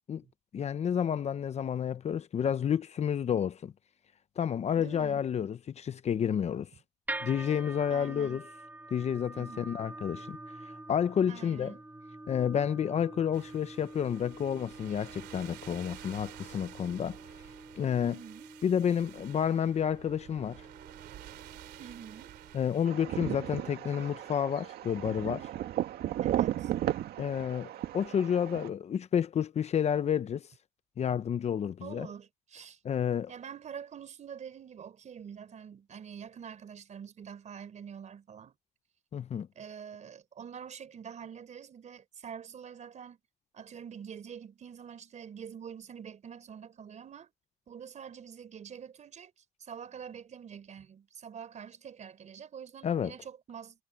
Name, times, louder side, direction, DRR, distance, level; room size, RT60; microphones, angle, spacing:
voice 1, 0.5-3.7 4.4-6.7 7.2-8.4 8.9-10.4 10.6-11.7 12.3-17.2 17.8-18.2 18.6-20.7 22.5-25.5 27.2-30.5 31.0-32.1 32.8-33.3 39.1-39.5 52.8-53.1, left 8 dB, 40° left, 0.8 m, -30 dB
voice 2, 4.7-5.2 7.9-8.4 9.3-9.7 11.3-11.8 18.0-18.5 21.8-22.3 26.2-26.7 31.8-32.8 33.3-38.5 39.6-43.2 43.5-47.3 47.7-49.3 49.6-53.8, right 7 dB, 45° right, 4.2 m, -46 dB
sound 1, 7.1-23.3, right 2 dB, 10° right, 2.1 m, -47 dB
sound 2, 13.3-22.9, right 16 dB, 85° right, 2.9 m, -51 dB
sound 3, 22.9-28.7, right 12 dB, 70° right, 2.0 m, -34 dB
cardioid pair, 110°, 17 cm